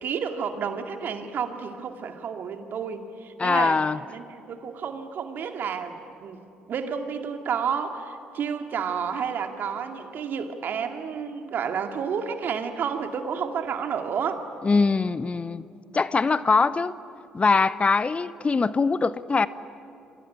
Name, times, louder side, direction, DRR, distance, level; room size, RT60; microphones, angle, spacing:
voice 1, 0.0-3.8 4.1-6.4 6.7-14.4, right 7 dB, 55° right, 6 dB, 2.3 m, -30 dB
voice 2, 3.4-4.0 14.6-15.6 15.9-16.9 17.3-19.5, left 4 dB, 30° left, 16 dB, 0.8 m, -22 dB
27.5 x 23.5 x 8.8 m, 2.8 s
hypercardioid pair, 50°, 4 cm